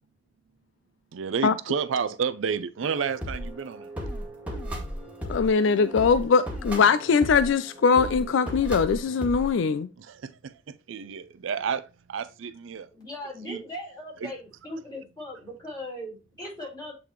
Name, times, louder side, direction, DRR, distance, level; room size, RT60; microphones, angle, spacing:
voice 1, 1.1-3.9 10.0-12.9 13.5-13.6 14.2-14.3, right 6 dB, 80° right, 0.4 m, -31 dB
sound 1, 2.8-9.5, equal, 10° right, 2.0 m, -36 dB
voice 2, 5.2-9.9, left 5 dB, 70° left, 0.4 m, -21 dB
voice 3, 12.9-16.9, left 1 dB, 20° left, 4.0 m, -39 dB
8.3 x 3.8 x 3.0 m
head